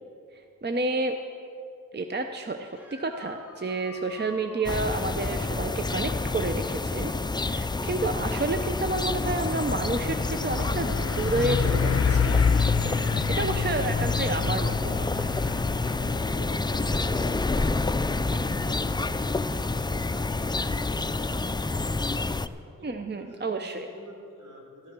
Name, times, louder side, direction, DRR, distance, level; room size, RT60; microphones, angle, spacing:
voice 1, 0.3-1.2 1.9-12.4 13.4-15.3 22.8-23.9, right 2 dB, 30° right, 6 dB, 0.7 m, -30 dB
sound 1, 2.7-5.6 9.0-9.1 11.1-11.2 17.4-17.5, left 2 dB, 5° right, 1.7 m, -47 dB
sound 2, 4.6-22.5, left 3 dB, 15° left, 0.4 m, -28 dB
Truck, 7.6-21.8, left 6 dB, 45° left, 0.7 m, -30 dB
voice 2, 12.8-13.6 15.3-15.5 15.8-21.4 22.8-24.9, equal, 60° right, -2 dB, 3.8 m, -47 dB
13.5 x 10.0 x 6.1 m, 2.6 s
cardioid pair, 60°, 33 cm